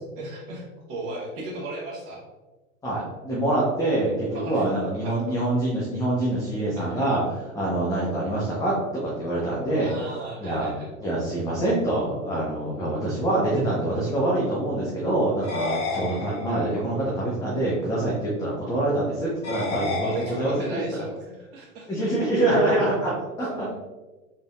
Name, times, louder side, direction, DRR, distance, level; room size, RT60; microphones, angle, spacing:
voice 1, 0.1-2.2 4.3-4.7 5.0-5.4 6.8-7.0 9.8-10.9 19.6-22.1, right 2 dB, 35° right, -3 dB, 1.3 m, -36 dB
voice 2, 2.8-8.8 9.0-9.9 10.4-10.7 11.0-21.1 21.9-23.7, right 1 dB, 10° left, -5 dB, 0.6 m, -25 dB
sound 1, 15.4-16.8 19.4-20.8, left 3 dB, 60° left, 1.2 m, -31 dB
4.0 x 3.3 x 2.5 m, 1.2 s
figure-of-eight pair, 90°, 41 cm